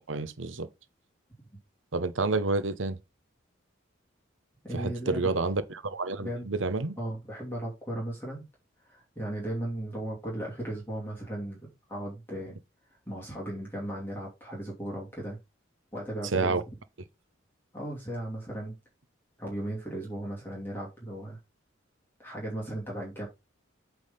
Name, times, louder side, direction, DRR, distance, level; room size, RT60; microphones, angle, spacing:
voice 1, 0.1-0.7 1.9-3.0 4.7-7.0 16.3-16.6, right 3 dB, 80° right, 1.0 m, -29 dB
voice 2, 4.6-5.3 6.2-6.7 7.0-8.4 8.8-11.6 11.9-12.6 12.9-15.4 15.9-16.6 17.7-18.7 19.4-21.4 22.2-23.3, right 1 dB, 10° left, 2.6 m, -36 dB
8.5 x 3.8 x 5.3 m
head